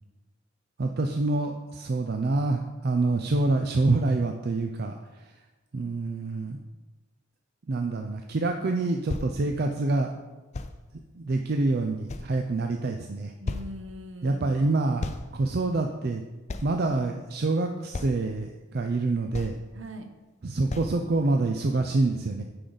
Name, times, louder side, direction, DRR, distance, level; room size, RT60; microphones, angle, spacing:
voice 1, 0.8-5.0 5.7-6.6 7.7-10.1 11.1-13.3 14.2-15.1 15.3-16.2 16.6-19.5 20.4-22.4, right 2 dB, 50° right, 4 dB, 0.4 m, -26 dB
sound 1, 8.5-8.6 9.1-9.3 10.5-10.8 11.5-11.6 12.1-12.7 13.1-13.2 13.5-13.7 15.0-15.3 15.6-15.7 16.5-16.7 17.3-17.4 17.9-18.3 18.9-19.0 19.3-19.7 20.1-20.2 20.7-20.9 21.5-21.6, left 2 dB, 35° left, 0.4 m, -34 dB
voice 2, 13.4-14.9 19.7-20.1, equal, 65° right, 6 dB, 0.8 m, -41 dB
9.8 x 5.0 x 4.0 m, 1.2 s
head